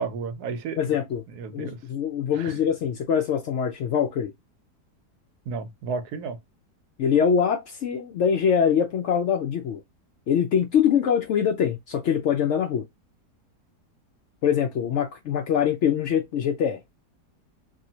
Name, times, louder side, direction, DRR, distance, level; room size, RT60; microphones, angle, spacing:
voice 1, 0.0-0.9 1.3-1.8 2.4-2.6 5.5-6.4, right 5 dB, 75° right, 1.1 m, -32 dB
voice 2, 0.8-1.2 1.5-4.3 7.0-9.8 10.3-12.8 14.4-16.8, left 8 dB, 80° left, 0.6 m, -23 dB
2.7 x 2.7 x 2.7 m
omnidirectional pair, 1.8 m